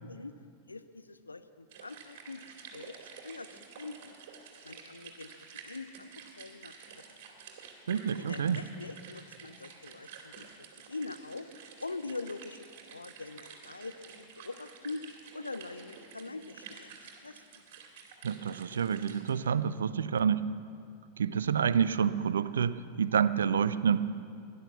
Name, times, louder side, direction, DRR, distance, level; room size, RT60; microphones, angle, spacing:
voice 1, 0.7-2.4 2.7-3.0 3.2-3.5 3.8-4.1 4.6-5.3 5.6-6.1 6.4-6.7 8.2-10.5 10.9-11.5 11.8-12.6 12.9-15.0 15.3-16.9 17.2-17.4, left 3 dB, 80° left, 11 dB, 0.7 m, -43 dB
sound 1, 1.7-19.3, right 6 dB, 50° right, 2.5 m, -50 dB
voice 2, 7.9-8.6 18.2-20.4 21.2-24.0, right 7 dB, 65° right, 15 dB, 0.5 m, -28 dB
17.0 x 11.0 x 7.0 m, 2.3 s
figure-of-eight pair, 90°, 0 cm